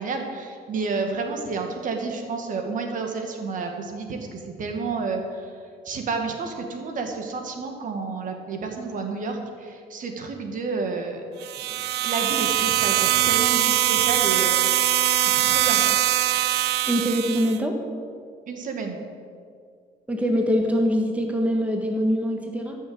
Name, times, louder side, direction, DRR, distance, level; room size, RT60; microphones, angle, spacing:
voice 1, 0.0-5.5 5.9-11.2 11.6-15.9 18.5-19.0, right 4 dB, 50° right, 4 dB, 1.9 m, -30 dB
sound 1, 11.4-17.6, right 14 dB, 80° right, 0.6 m, -22 dB
voice 2, 16.9-17.7 20.1-22.8, equal, 10° right, 2 dB, 1.4 m, -23 dB
13.5 x 6.5 x 7.9 m, 2.2 s
cardioid pair, 110°, 17 cm